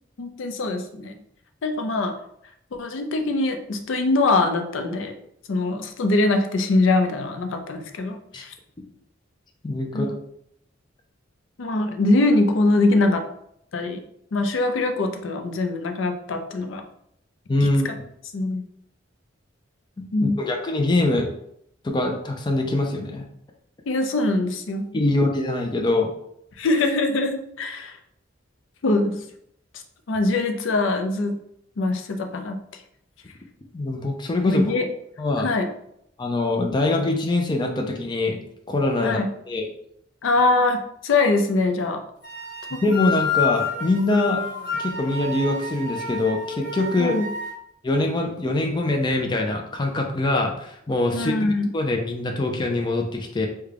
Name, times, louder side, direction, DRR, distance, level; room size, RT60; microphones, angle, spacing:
voice 1, 0.2-1.2 1.6-2.1 2.7-5.1 5.5-8.5 9.9-10.1 11.6-13.2 13.7-14.0 14.3-16.8 17.8-17.9 18.3-18.6 20.1-20.4 23.9-24.8 26.6-28.0 28.8-29.2 30.1-31.4 31.8-32.6 34.4-34.9 35.4-35.7 39.0-39.3 40.2-42.0 42.7-42.8 47.0-47.3 51.1-51.7, left 2 dB, 80° left, 6 dB, 0.5 m, -23 dB
voice 2, 9.6-10.1 17.5-17.9 20.0-20.1 20.4-21.3 21.8-23.2 24.9-26.1 33.7-34.6 35.2-35.5 36.2-38.4 38.7-39.2 39.5-39.7 42.7-44.4 44.8-47.2 47.8-51.3 51.7-53.5, left 2 dB, 25° left, 2 dB, 0.4 m, -23 dB
sound 1, 42.2-47.5, left 5 dB, 60° left, 1.1 m, -29 dB
3.5 x 2.2 x 3.3 m, 0.73 s
head